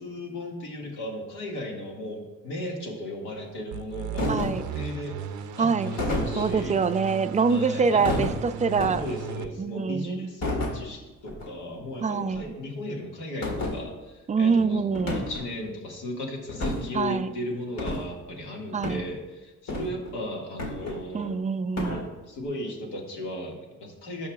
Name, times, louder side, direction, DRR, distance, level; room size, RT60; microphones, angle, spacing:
voice 1, 0.0-6.8 7.5-8.2 8.9-14.8 15.1-21.3 21.8-24.3, left 1 dB, 85° left, 0 dB, 1.9 m, -36 dB
sound 1, 3.7-9.5, right 8 dB, 80° right, 0.6 m, -37 dB
sound 2, 4.2-4.7 6.0-6.7 8.0-9.2 10.4-10.8 11.2-11.5 11.7-11.8 12.3-12.4 13.4-13.8 14.9-15.5 16.5-17.0 17.8-18.1 18.8-19.0 19.7-20.1 20.6-21.3 21.8-22.0, left 1 dB, 60° left, 1.8 m, -30 dB
voice 2, 4.3-4.6 5.6-5.9 6.4-9.0 9.6-10.3 12.0-12.5 14.3-15.3 16.9-17.3 18.7-19.0 21.1-22.1, right 5 dB, 25° right, 11 dB, 0.4 m, -25 dB
16.0 x 5.6 x 2.4 m, 1.1 s
cardioid pair, 90°, 30 cm